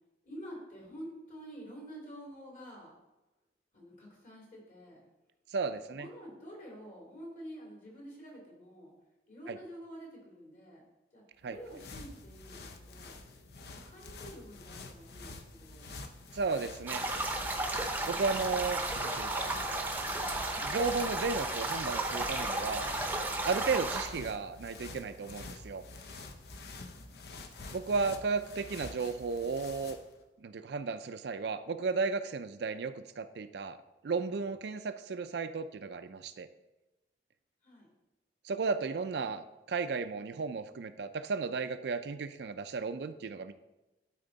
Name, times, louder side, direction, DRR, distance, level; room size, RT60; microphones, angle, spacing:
voice 1, 0.2-3.0 3.7-5.0 5.7-8.9 9.3-10.8 11.1-13.2 13.6-16.0 37.6-37.9, equal, 45° left, -3 dB, 3.0 m, -48 dB
voice 2, 5.5-6.1 9.5-9.6 11.4-11.6 16.3-17.0 18.1-19.5 20.6-22.9 23.4-25.8 27.7-30.0 30.4-33.8 34.0-36.5 38.4-43.5, right 4 dB, 70° right, 10 dB, 0.4 m, -34 dB
sound 1, 11.4-30.2, left 3 dB, 60° left, 0.7 m, -48 dB
sound 2, 16.9-24.1, right 2 dB, 10° right, 0.7 m, -34 dB
12.0 x 4.4 x 4.0 m, 1.0 s
head